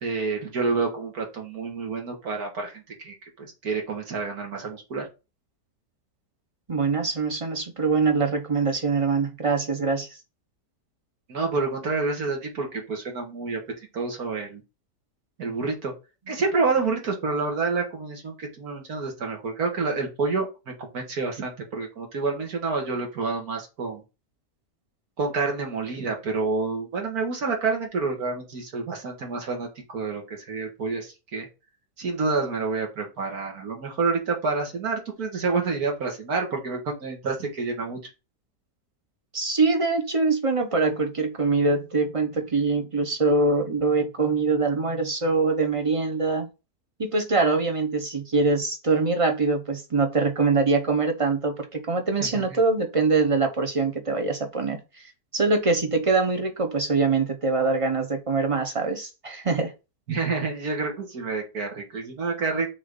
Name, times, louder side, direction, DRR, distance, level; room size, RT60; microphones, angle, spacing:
voice 1, 0.0-5.1 11.3-13.6 13.9-14.6 15.4-15.9 16.3-24.0 25.2-31.5 32.0-38.0 52.3-52.6 60.1-62.7, right 4 dB, 65° right, 2.2 m, -28 dB
voice 2, 6.7-10.1 39.3-46.5 47.0-54.8 55.3-59.7, right 3 dB, 25° right, 0.8 m, -23 dB
6.4 x 3.9 x 3.9 m
omnidirectional pair, 1.8 m